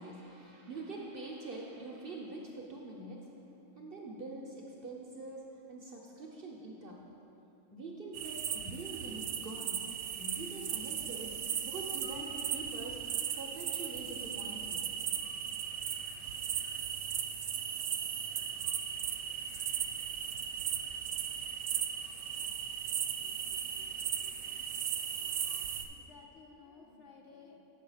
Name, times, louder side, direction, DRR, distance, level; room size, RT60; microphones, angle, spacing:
voice 1, 0.0-3.3 3.8-7.1 7.7-9.9 10.2-11.4 11.6-14.8 22.0-22.5 23.2-24.3 25.2-25.7, right 2 dB, 50° right, -1 dB, 0.7 m, -45 dB
sound 1, 8.1-25.9, right 8 dB, 80° right, 1.0 m, -37 dB
voice 2, 25.9-27.6, left 5 dB, 60° left, 1 dB, 0.9 m, -55 dB
7.7 x 5.4 x 5.5 m, 2.9 s
omnidirectional pair, 1.5 m